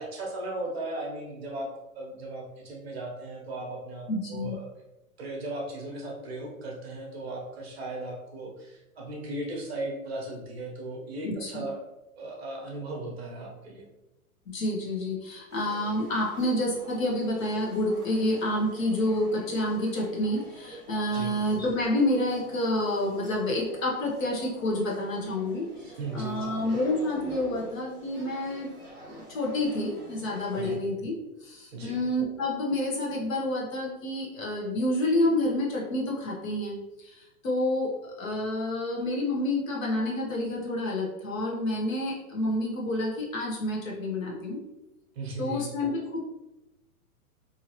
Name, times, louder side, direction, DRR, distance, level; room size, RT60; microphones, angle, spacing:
voice 1, 0.0-1.7 1.9-4.7 5.2-11.8 12.2-13.9 21.1-21.4 25.8-26.5 30.5-30.9 31.7-32.0 45.1-45.6, right 2 dB, 45° right, -1 dB, 0.8 m, -37 dB
voice 2, 4.1-4.5 11.2-11.6 14.5-28.7 29.1-31.1 31.4-44.6 45.4-46.2, left 1 dB, 60° left, -2 dB, 1.0 m, -29 dB
sound 1, 15.5-30.7, equal, 5° right, 0.6 m, -48 dB
2.9 x 2.7 x 2.8 m, 0.98 s
hypercardioid pair, 175°, 45 cm